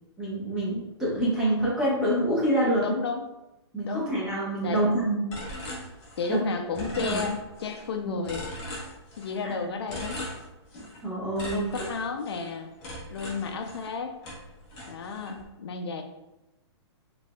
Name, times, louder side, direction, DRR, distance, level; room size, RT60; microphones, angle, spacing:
voice 1, 0.2-2.9 3.7-5.2 6.3-6.4 6.9-7.2 8.0-8.1 9.4-9.5 11.0-11.6, right 1 dB, 5° right, -8 dB, 0.9 m, -26 dB
voice 2, 2.8-3.2 3.8-4.1 4.6-4.8 6.2-8.4 9.2-10.2 11.5-12.7 13.1-14.2 14.9-16.0, left 5 dB, 60° left, 5 dB, 0.4 m, -32 dB
sound 1, 5.3-6.4 6.7-7.9 8.2-9.4 9.9-11.0 11.4-14.0 14.2-15.4, left 1 dB, 20° left, 1.0 m, -39 dB
4.0 x 3.5 x 2.2 m, 0.96 s
hypercardioid pair, 170°, 15 cm